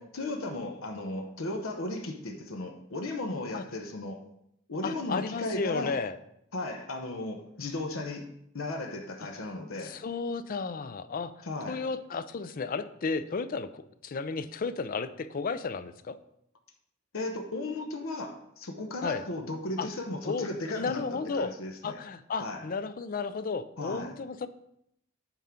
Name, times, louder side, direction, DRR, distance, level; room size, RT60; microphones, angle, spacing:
voice 1, 0.0-4.2 4.7-6.0 6.5-10.0 11.4-11.8 17.1-22.0 22.4-22.7 23.8-24.2, left 2 dB, 75° left, 4 dB, 0.9 m, -36 dB
voice 2, 3.5-3.9 4.8-6.1 9.8-11.3 11.7-16.2 19.0-19.2 19.8-19.9 20.2-21.5 21.8-24.5, left 4 dB, 40° left, 13 dB, 0.4 m, -33 dB
9.0 x 3.7 x 5.7 m, 0.76 s
head